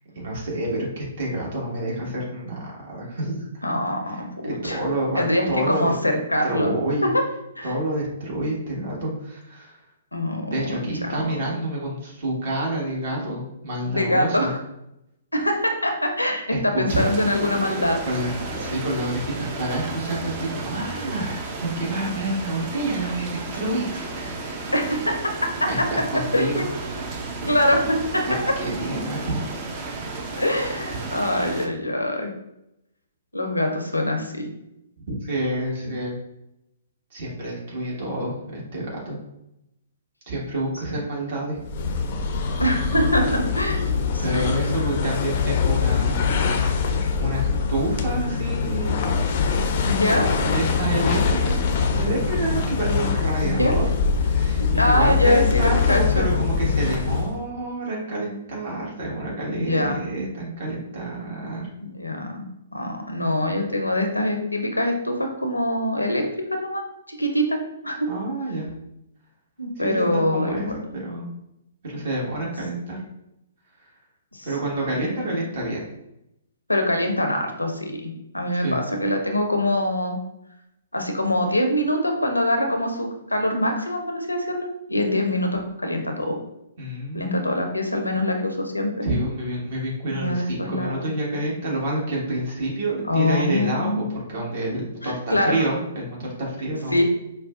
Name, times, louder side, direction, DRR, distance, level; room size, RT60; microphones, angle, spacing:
voice 1, 0.1-3.5 4.6-5.9 6.4-7.1 7.6-9.8 10.5-14.5 16.5-17.1 18.0-24.7 25.7-26.6 26.9-27.5 28.6-29.5 35.2-36.2 37.1-39.2 40.3-41.6 44.2-47.4 47.7-49.0 50.4-53.8 54.2-61.7 68.1-68.7 69.8-71.3 71.8-73.0 74.4-75.8 78.5-78.8 86.8-87.4 89.0-97.0, right 1 dB, 50° right, -3 dB, 1.4 m, -28 dB
voice 2, 3.6-4.8 5.1-6.7 7.0-7.2 7.6-7.8 10.1-11.3 13.8-14.6 15.3-18.0 24.7-25.1 25.8-25.9 26.3-26.7 27.5-28.5 30.3-32.3 33.3-34.5 42.6-44.5 49.9-50.3 53.4-53.7 54.6-56.3 59.5-60.0 61.8-62.4 62.7-67.6 67.8-68.1 69.6-70.9 74.3-74.5 75.1-75.2 76.7-80.2 80.9-86.4 87.1-89.1 90.1-91.1 93.0-94.0 95.0-95.7 96.9-97.0, left 1 dB, 90° left, 3 dB, 0.6 m, -24 dB
sound 1, 16.9-31.7, right 3 dB, 30° right, 0.5 m, -33 dB
sound 2, 41.6-57.5, left 5 dB, 45° left, 0.4 m, -23 dB
4.7 x 2.2 x 2.4 m, 0.83 s
figure-of-eight pair, 120°, 0 cm